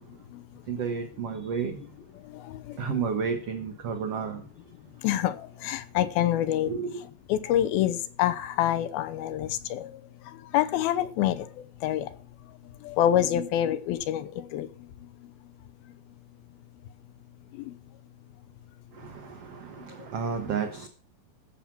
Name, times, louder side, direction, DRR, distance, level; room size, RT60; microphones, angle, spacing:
voice 1, 0.7-1.8 2.8-4.4 6.7-7.0 19.0-20.9, right 6 dB, 75° right, 1.4 m, -31 dB
voice 2, 2.3-3.1 5.0-10.0 10.3-11.5 11.8-12.1 12.8-14.7 17.5-17.7, left 12 dB, 90° left, 2.7 m, -27 dB
15.0 x 7.3 x 6.0 m
omnidirectional pair, 4.3 m